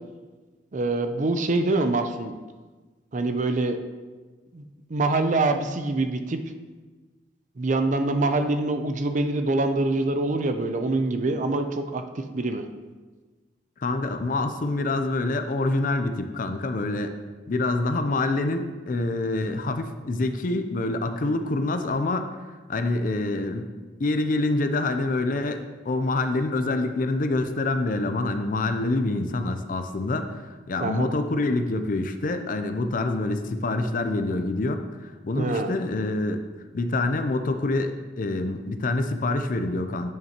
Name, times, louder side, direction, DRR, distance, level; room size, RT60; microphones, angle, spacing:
voice 1, 0.7-2.3 3.1-3.8 4.5-4.6 4.9-6.4 7.6-12.7 30.8-31.1 35.4-35.8, right 2 dB, 45° right, 7 dB, 0.5 m, -25 dB
voice 2, 13.8-17.1 17.5-22.4 22.7-23.7 24.0-36.5 36.7-40.1, left 2 dB, 50° left, 8 dB, 0.5 m, -26 dB
8.8 x 6.3 x 2.9 m, 1.3 s
head